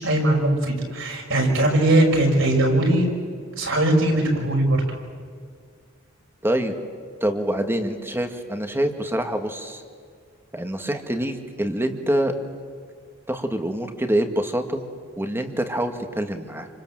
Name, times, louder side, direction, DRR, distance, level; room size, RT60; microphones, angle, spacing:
voice 1, 0.0-3.1 3.6-4.8, right 1 dB, 65° right, 1 dB, 6.2 m, -20 dB
voice 2, 6.4-6.8 7.2-9.8 10.5-12.3 13.3-14.8 15.2-16.7, right 1 dB, 10° right, 6 dB, 2.0 m, -25 dB
28.5 x 26.0 x 7.7 m, 2.1 s
head